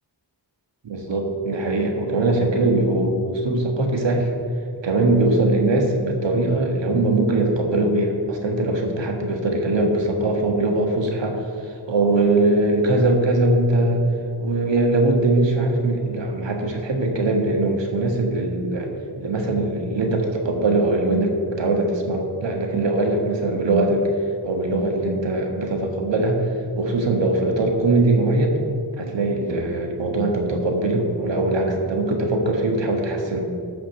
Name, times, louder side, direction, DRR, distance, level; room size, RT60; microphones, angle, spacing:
voice 1, 0.8-4.3 4.8-14.1 14.4-18.9 19.2-24.1 24.4-26.5 26.7-28.6 29.0-33.4, right 2 dB, 85° right, 2 dB, 1.5 m, -21 dB
12.5 x 5.2 x 6.5 m, 2.4 s
wide cardioid pair, 110°, 43 cm